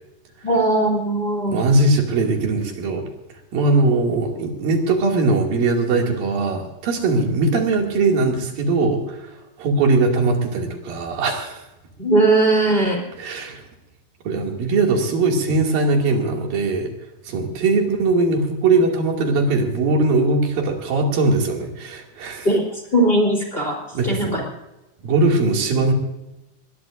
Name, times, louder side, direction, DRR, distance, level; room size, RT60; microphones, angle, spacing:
voice 1, 0.4-1.6 12.0-13.1 22.4-24.4, right 2 dB, 15° left, 1 dB, 3.3 m, -19 dB
voice 2, 1.5-3.0 3.5-9.3 9.6-11.6 13.2-13.6 14.3-16.9 17.3-22.5 23.9-24.4 25.0-25.9, right 3 dB, 85° right, 1 dB, 4.2 m, -20 dB
21.0 x 20.5 x 2.6 m, 0.95 s
omnidirectional pair, 3.9 m